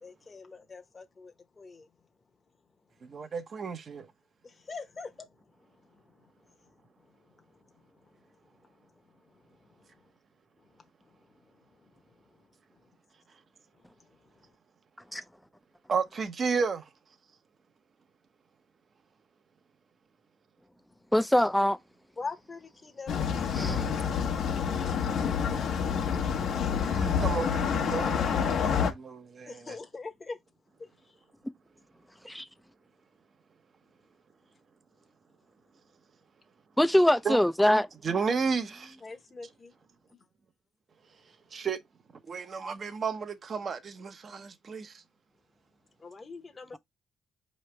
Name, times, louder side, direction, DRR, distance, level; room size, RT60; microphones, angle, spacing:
voice 1, 0.0-1.9 4.4-5.3 22.2-24.1 24.5-25.9 29.5-30.4 39.0-39.7 46.0-46.8, left 4 dB, 30° left, 0.9 m, -43 dB
voice 2, 3.0-4.1 15.9-16.8 26.8-29.8 37.2-37.4 38.0-39.0 41.5-41.8 42.3-44.9, right 5 dB, 45° right, 0.8 m, -32 dB
voice 3, 21.1-21.8 23.5-23.9 32.3-32.4 36.8-37.9, left 1 dB, 5° left, 0.5 m, -23 dB
sound 1, 23.1-28.9, left 7 dB, 75° left, 1.0 m, -28 dB
4.8 x 3.2 x 3.2 m
cardioid pair, 90°, 0 cm